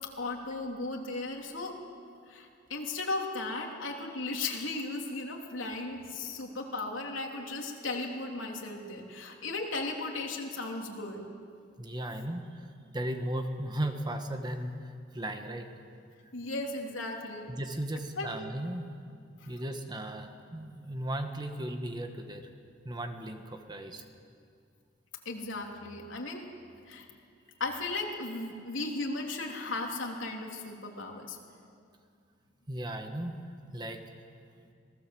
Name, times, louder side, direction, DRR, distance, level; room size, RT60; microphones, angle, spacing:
voice 1, 0.2-1.8 2.3-11.2 16.3-17.5 18.2-18.3 19.4-19.5 25.2-26.5 26.9-27.0 27.6-31.4, left 2 dB, 85° left, 0 dB, 3.3 m, -36 dB
voice 2, 11.8-12.6 12.9-15.7 17.5-18.9 19.5-22.5 22.8-24.0 32.7-33.4 33.7-34.0, right 1 dB, 20° right, 5 dB, 1.5 m, -36 dB
26.5 x 18.5 x 7.8 m, 2.3 s
head